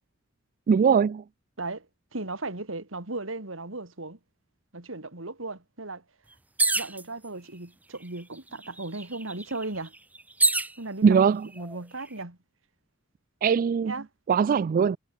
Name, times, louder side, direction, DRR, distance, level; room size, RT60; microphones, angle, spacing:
voice 1, 0.7-1.2 11.0-11.5 13.4-13.9 14.3-15.0, right 6 dB, 45° right, 0.3 m, -21 dB
voice 2, 2.1-4.2 4.7-6.0 6.7-9.9 10.8-12.4 13.8-14.1, right 2 dB, 80° right, 3.0 m, -36 dB
sound 1, 6.6-7.0 7.9-8.0 8.4-10.7 11.5-12.0, right 3 dB, 10° right, 0.7 m, -26 dB
head